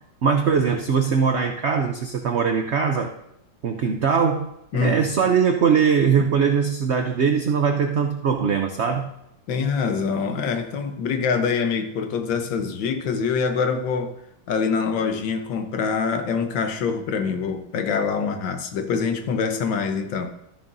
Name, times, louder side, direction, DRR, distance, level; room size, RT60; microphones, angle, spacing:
voice 1, 0.2-3.1 3.6-4.5 4.7-9.1, right 6 dB, 70° right, 4 dB, 0.6 m, -21 dB
voice 2, 9.5-14.1 14.5-20.3, left 5 dB, 85° left, 7 dB, 1.7 m, -25 dB
13.0 x 10.5 x 2.6 m, 0.83 s
omnidirectional pair, 2.0 m